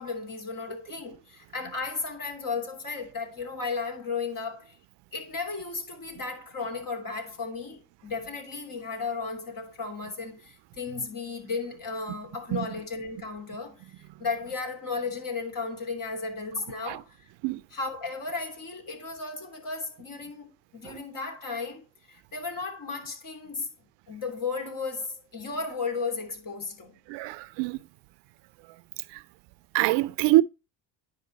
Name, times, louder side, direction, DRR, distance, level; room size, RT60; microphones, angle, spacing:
voice 1, 0.0-4.8 5.1-17.3 17.7-23.7 24.1-27.0, left 4 dB, 45° left, 3.0 m, -35 dB
voice 2, 27.1-27.8 29.7-30.4, right 19 dB, 60° right, 0.7 m, -24 dB
9.7 x 5.1 x 4.0 m
hypercardioid pair, 70°, 47 cm